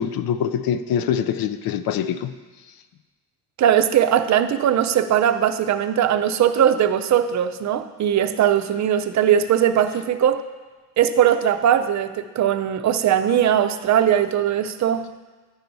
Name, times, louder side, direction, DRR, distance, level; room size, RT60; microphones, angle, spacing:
voice 1, 0.0-2.3, left 8 dB, 65° left, 11 dB, 0.5 m, -24 dB
voice 2, 3.6-10.4 11.0-15.0, right 9 dB, 45° right, 10 dB, 0.5 m, -19 dB
10.0 x 4.5 x 5.3 m, 1.3 s
cardioid pair, 110°, 38 cm